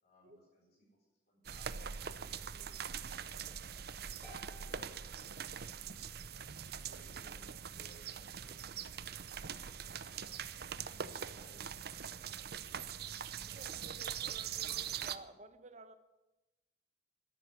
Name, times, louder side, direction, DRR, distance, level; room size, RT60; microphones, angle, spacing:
voice 1, 0.0-2.9 3.2-5.6 6.2-8.8 9.3-11.6, equal, 55° left, 5.0 m, -65 dB
sound 1, 1.4-15.2, right 8 dB, 60° right, 0.7 m, -43 dB
Harp, 4.2-6.1, right 2 dB, 10° left, 3.2 m, -58 dB
voice 2, 13.5-15.9, right 2 dB, 40° right, 1.1 m, -54 dB
13.0 x 10.5 x 9.5 m
head